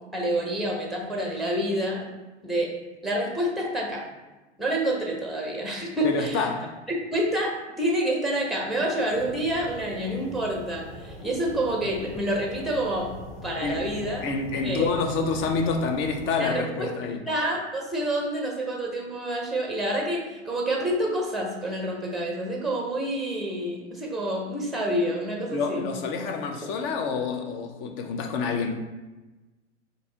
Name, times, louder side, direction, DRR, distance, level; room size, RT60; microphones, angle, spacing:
voice 1, 0.1-2.1 2.4-2.7 3.0-4.0 4.6-6.5 7.1-7.5 7.8-13.1 13.4-14.2 14.6-14.9 16.4-16.9 17.3-25.9, right 1 dB, ahead, 0.7 m, -28 dB
voice 2, 6.0-6.7 13.6-13.9 14.2-17.2 25.5-28.7, left 4 dB, 35° left, 0.6 m, -28 dB
sound 1, 9.1-16.3, left 1 dB, 70° left, 1.1 m, -41 dB
3.9 x 2.7 x 3.8 m
hypercardioid pair, 100°, 36 cm